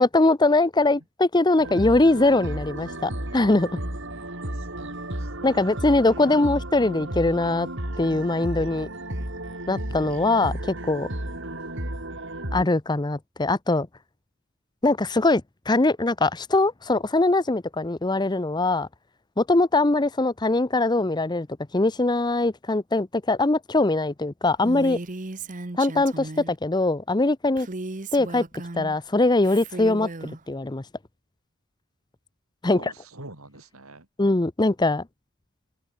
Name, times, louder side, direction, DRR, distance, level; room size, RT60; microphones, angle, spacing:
voice 1, 0.0-3.7 5.4-7.7 8.0-8.9 9.7-11.1 12.5-13.9 14.8-18.9 19.4-21.5 21.7-25.0 25.8-27.7 28.1-28.4 28.7-30.1 30.5-30.8 32.6-32.9 34.2-35.0, left 2 dB, 20° left, 0.7 m, -22 dB
sound 1, 1.6-12.6, right 1 dB, 60° right, 6.0 m, -33 dB
voice 2, 4.2-5.7 25.4-25.5 32.6-34.1, right 2 dB, 85° right, 6.9 m, -46 dB
Female speech woman speaking, 24.6-26.6 27.6-29.0 29.4-30.4, right 2 dB, 40° right, 1.1 m, -36 dB
head